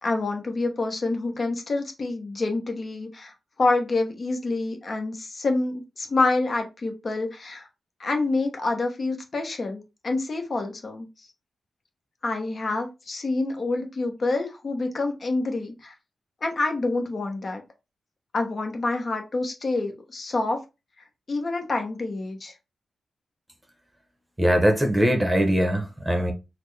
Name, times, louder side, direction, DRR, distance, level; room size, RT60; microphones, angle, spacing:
voice 1, 0.0-7.7 8.0-11.3 12.2-15.9 16.4-17.6 18.3-20.6 21.3-22.5, left 3 dB, 45° left, 0.9 m, -27 dB
voice 2, 24.4-26.3, equal, 10° right, 0.8 m, -21 dB
4.1 x 2.1 x 3.3 m
cardioid pair, 75°, 0 cm